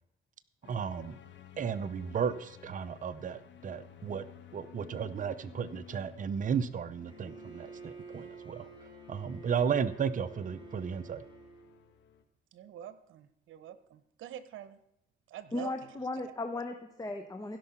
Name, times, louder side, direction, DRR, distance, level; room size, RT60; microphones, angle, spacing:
sound 1, 0.6-12.2, left 9 dB, 65° left, 1.3 m, -54 dB
voice 1, 0.7-1.2 1.6-4.3 4.5-11.2, right 7 dB, 40° right, 10 dB, 0.7 m, -34 dB
Bowed string instrument, 7.1-11.8, right 4 dB, 20° right, 3.5 m, -50 dB
voice 2, 12.5-14.8 15.3-16.0, right 11 dB, 80° right, 14 dB, 0.9 m, -46 dB
voice 3, 15.5-17.6, left 2 dB, 20° left, 6 dB, 1.0 m, -36 dB
16.0 x 5.5 x 5.8 m, 0.80 s
cardioid pair, 90°, 20 cm